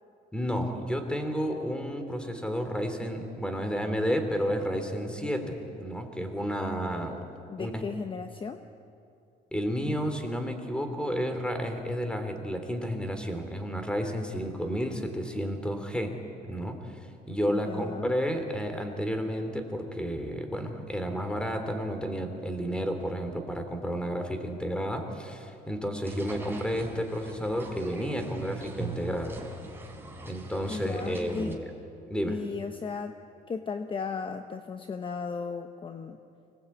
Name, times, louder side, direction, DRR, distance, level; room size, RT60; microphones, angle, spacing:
voice 1, 0.3-7.2 7.6-7.8 9.5-16.2 16.5-17.0 17.3-29.3 30.2-31.7 32.1-32.4, equal, 5° left, 6 dB, 3.0 m, -31 dB
voice 2, 7.5-8.6 17.5-18.1 30.7-31.6 32.2-33.2 33.5-36.2, left 5 dB, 30° left, 8 dB, 1.0 m, -35 dB
sound 1, 26.0-31.5, right 2 dB, 15° right, 3.6 m, -41 dB
25.5 x 19.0 x 8.5 m, 2.7 s
cardioid pair, 110°, 17 cm